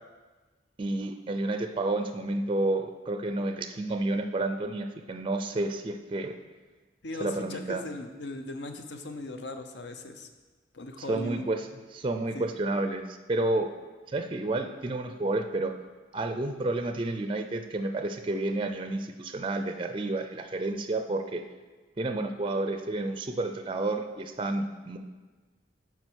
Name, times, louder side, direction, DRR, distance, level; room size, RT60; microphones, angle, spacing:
voice 1, 0.8-6.3 7.2-7.8 11.0-11.7 11.9-13.7 14.1-15.7 16.1-21.4 22.0-25.0, right 2 dB, 30° right, 7 dB, 0.4 m, -30 dB
voice 2, 7.0-10.3 10.7-11.6 12.3-12.5, left 1 dB, 70° left, 7 dB, 0.8 m, -38 dB
9.7 x 4.7 x 6.2 m, 1.3 s
head